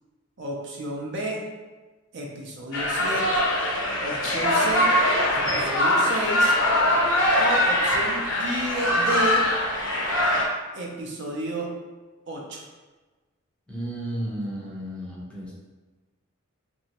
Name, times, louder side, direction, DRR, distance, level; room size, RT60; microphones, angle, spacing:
voice 1, 0.4-1.4 2.1-3.3 4.0-4.9 5.3-6.5 7.4-9.4 10.7-11.7 12.3-12.6, right 1 dB, 55° right, -1 dB, 0.5 m, -31 dB
sound 1, 2.7-10.4, left 1 dB, 60° left, 0.6 m, -22 dB
voice 2, 13.7-15.5, right 1 dB, 5° left, -6 dB, 0.5 m, -33 dB
2.9 x 2.7 x 2.8 m, 1.3 s
head